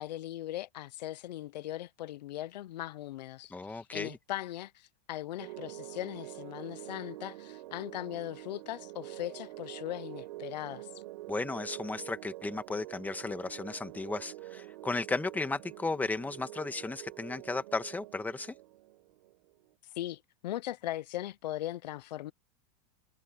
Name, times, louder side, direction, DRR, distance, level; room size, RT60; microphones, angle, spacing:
voice 1, 0.0-10.9 20.0-22.3, left 14 dB, 85° left, 0.7 m, -39 dB
voice 2, 3.5-4.2 11.3-18.5, left 3 dB, 10° left, 1.6 m, -35 dB
sound 1, 5.4-19.7, right 18 dB, 70° right, 4.4 m, -46 dB
supercardioid pair, 145°, 21 cm